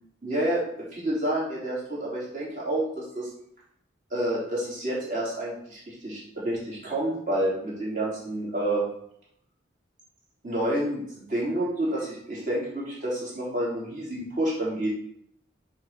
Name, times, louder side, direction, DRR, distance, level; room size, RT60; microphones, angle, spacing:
voice 1, 0.2-3.3 4.1-8.8 10.4-14.9, right 1 dB, 40° right, -6 dB, 3.6 m, -29 dB
7.3 x 4.8 x 6.0 m, 0.71 s
head